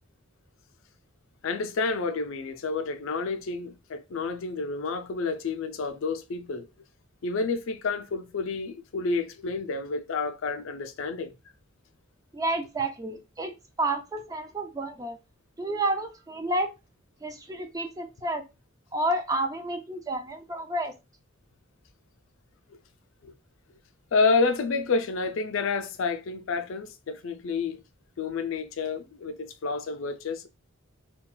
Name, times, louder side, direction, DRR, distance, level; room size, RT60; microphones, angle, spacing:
voice 1, 1.4-6.7 7.2-11.3 23.2-23.3 24.1-27.8 28.2-30.5, left 4 dB, 70° left, 0.4 m, -29 dB
voice 2, 12.3-13.5 13.8-15.2 15.6-16.7 17.2-18.5 18.9-20.9, right 1 dB, 15° right, 0.3 m, -30 dB
2.4 x 2.2 x 3.7 m
head